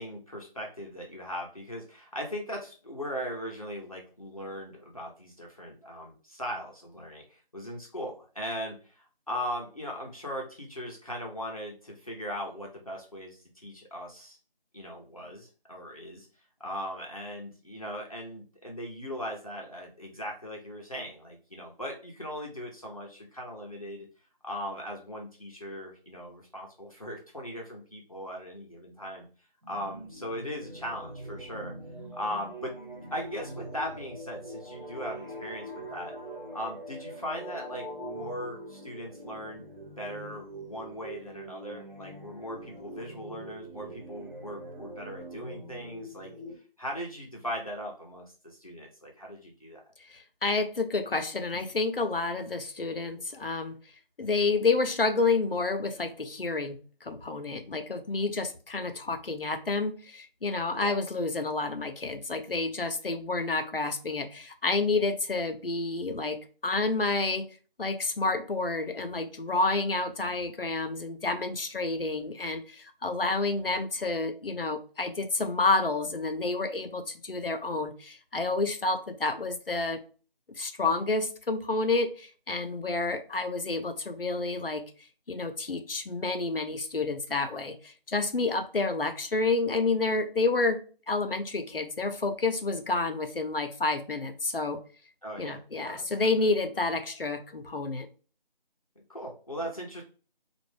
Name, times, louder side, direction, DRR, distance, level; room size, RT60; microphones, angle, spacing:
voice 1, 0.0-14.4 14.7-16.3 16.6-24.1 24.4-29.2 29.7-31.7 32.1-32.7 33.1-36.1 36.5-39.6 40.0-46.3 46.8-49.8 60.7-61.0 95.2-96.1 99.1-100.0, equal, 40° left, -1 dB, 0.8 m, -39 dB
sound 1, 29.6-46.5, right 1 dB, 60° right, 1.5 m, -43 dB
voice 2, 50.1-53.8 54.2-66.4 66.6-67.5 67.8-80.0 80.6-84.8 85.3-94.8 95.4-98.1, left 3 dB, 75° left, 7 dB, 0.8 m, -29 dB
4.4 x 2.5 x 3.3 m, 0.37 s
figure-of-eight pair, 170°, 29 cm